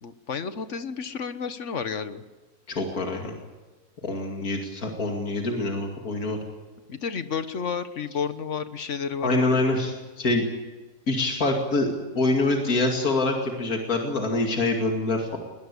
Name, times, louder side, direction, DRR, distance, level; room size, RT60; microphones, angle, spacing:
voice 1, 0.0-2.2 6.9-9.7, left 6 dB, 55° left, 11 dB, 1.5 m, -31 dB
voice 2, 2.7-3.3 4.0-6.4 9.2-10.4 11.1-15.4, left 2 dB, 75° left, 2 dB, 2.9 m, -25 dB
21.0 x 21.0 x 8.4 m, 1.3 s
omnidirectional pair, 1.5 m